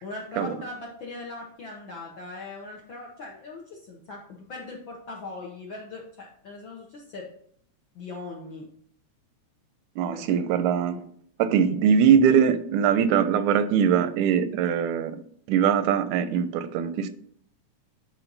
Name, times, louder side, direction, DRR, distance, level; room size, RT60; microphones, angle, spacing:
voice 1, 0.0-7.2 7.9-8.7 10.1-10.4, left 2 dB, 65° left, -2 dB, 1.2 m, -40 dB
voice 2, 10.0-11.0 11.4-15.2 15.5-17.1, right 8 dB, 85° right, 12 dB, 2.0 m, -22 dB
8.7 x 4.5 x 3.9 m, 0.62 s
omnidirectional pair, 3.4 m